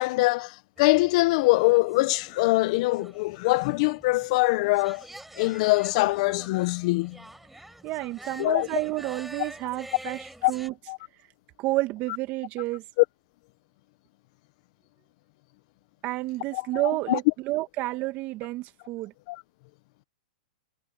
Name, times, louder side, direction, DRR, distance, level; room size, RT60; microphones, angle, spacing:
voice 1, 0.0-5.1 5.4-7.2 8.4-8.7 10.4-10.5 10.9-11.0 16.5-16.8 17.1-17.2 19.3-19.4, left 22 dB, 45° left, 1.3 m, -23 dB
sound 1, 0.8-10.7, right 1 dB, 5° right, 5.0 m, -47 dB
voice 2, 7.8-10.7 11.6-12.8 16.0-19.1, right 19 dB, 35° right, 2.1 m, -30 dB
hypercardioid pair, 135°, 5 cm